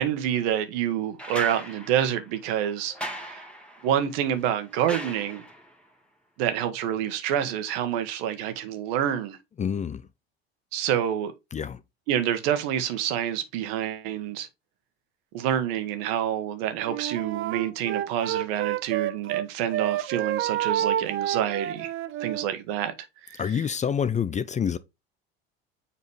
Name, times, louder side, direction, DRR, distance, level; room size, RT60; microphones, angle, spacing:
voice 1, 0.0-3.4 3.8-5.4 6.4-9.4 10.7-11.3 12.1-14.5 15.3-21.9 22.2-22.9 23.3-23.4, right 10 dB, 70° right, 1.4 m, -27 dB
sound 1, 1.2-5.8 7.4-7.5, equal, 5° left, 1.8 m, -39 dB
voice 2, 9.6-10.1 11.5-11.8 23.4-24.8, left 7 dB, 25° left, 0.5 m, -27 dB
Wind instrument woodwind instrument, 16.9-19.5 19.7-22.5, right 12 dB, 40° right, 0.5 m, -29 dB
7.1 x 4.1 x 3.4 m
hypercardioid pair, 75°, 31 cm